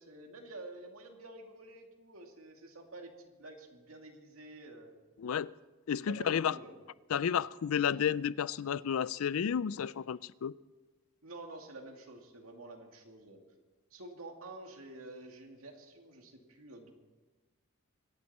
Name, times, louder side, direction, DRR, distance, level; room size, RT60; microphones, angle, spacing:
voice 1, 0.0-4.9 6.1-6.8 11.2-13.4 13.9-16.9, right 2 dB, 90° right, 2.3 m, -49 dB
voice 2, 5.2-5.5 5.9-6.6 7.1-10.5, left 8 dB, 85° left, 0.4 m, -31 dB
25.5 x 11.5 x 4.3 m
head